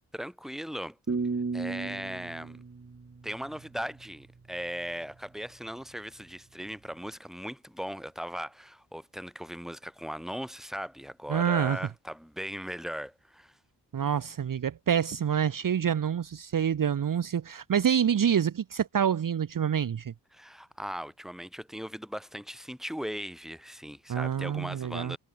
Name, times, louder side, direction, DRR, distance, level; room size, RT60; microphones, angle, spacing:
voice 1, 0.1-1.0 1.5-2.6 3.2-13.6 20.3-25.2, equal, ahead, 2.4 m, -38 dB
sound 1, 1.1-4.0, right 4 dB, 35° right, 2.3 m, -34 dB
voice 2, 11.3-11.9 13.9-20.1 24.1-25.2, right 8 dB, 50° right, 0.9 m, -27 dB
cardioid pair, 65°, 42 cm